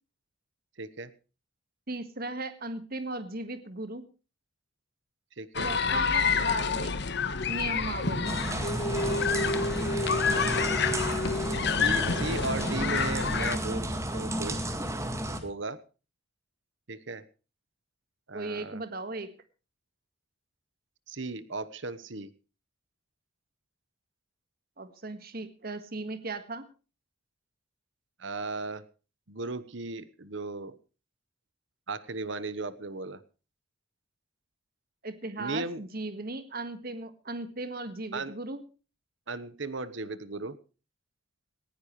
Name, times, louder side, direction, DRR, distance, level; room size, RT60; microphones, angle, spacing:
voice 1, 0.8-1.1 5.4-5.7 10.0-10.7 11.8-14.6 15.4-15.8 16.9-17.2 18.3-18.8 21.1-22.3 28.2-28.8 29.3-30.7 31.9-33.2 35.4-35.8 38.1-38.3 39.3-40.6, right 3 dB, 60° right, 16 dB, 1.1 m, -36 dB
voice 2, 1.9-4.0 5.6-6.9 7.5-8.4 18.3-19.3 24.8-26.7 35.0-38.6, right 2 dB, 45° right, 10 dB, 1.6 m, -37 dB
sound 1, 5.5-13.6, left 5 dB, 55° left, 1.3 m, -28 dB
sound 2, 8.2-15.4, right 1 dB, 15° right, 1.9 m, -32 dB
19.0 x 15.5 x 3.2 m, 0.34 s
head